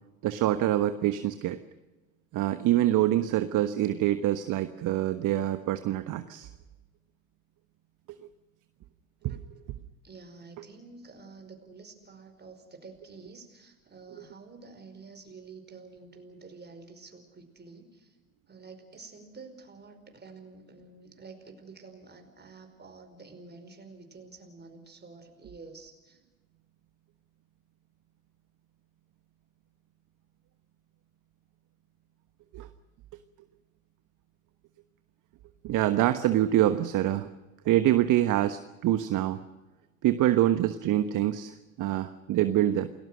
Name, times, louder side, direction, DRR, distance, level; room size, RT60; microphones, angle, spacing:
voice 1, 0.2-1.6 2.3-6.5 9.2-9.4 32.5-32.7 35.6-37.3 37.6-39.4 40.0-42.9, right 13 dB, 45° right, 11 dB, 1.3 m, -25 dB
voice 2, 10.0-18.2 18.5-26.2, right 4 dB, 25° right, 7 dB, 5.2 m, -49 dB
28.5 x 19.5 x 6.4 m, 1.2 s
hypercardioid pair, 70°, 42 cm